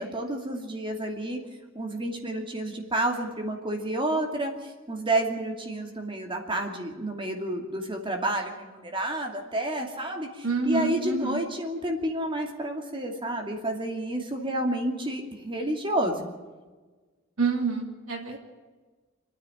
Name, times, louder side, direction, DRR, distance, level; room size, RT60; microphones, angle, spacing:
voice 1, 0.0-1.4 1.7-16.3, right 1 dB, 25° right, 3 dB, 2.6 m, -30 dB
voice 2, 10.4-11.4 17.4-18.4, right 4 dB, 75° right, 0 dB, 2.9 m, -27 dB
28.0 x 9.7 x 10.0 m, 1.3 s
head